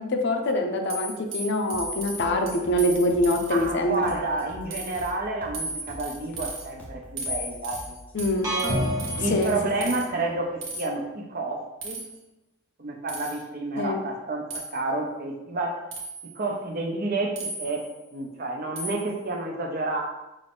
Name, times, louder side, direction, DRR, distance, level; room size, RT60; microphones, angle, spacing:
voice 1, 0.0-4.1 8.1-8.6 9.3-9.6 13.8-14.0, left 1 dB, 55° left, 4 dB, 0.5 m, -24 dB
sound 1, 0.9-3.7 4.1-4.4 4.7-5.1 5.5-6.6 7.2-10.1 10.6-10.9 11.8-12.2 13.1-13.4 14.5-14.7 15.9-16.4 17.4-17.9 18.8-19.1, right 1 dB, 60° right, 1.1 m, -36 dB
sound 2, 1.7-8.9, equal, 10° left, 0.7 m, -44 dB
voice 2, 3.5-8.0 9.2-12.0 12.8-15.8 16.4-17.8 18.1-20.0, right 2 dB, 45° right, 1 dB, 0.7 m, -30 dB
sound 3, 8.4-10.4, equal, 15° right, 1.0 m, -29 dB
5.4 x 2.6 x 3.4 m, 0.98 s
head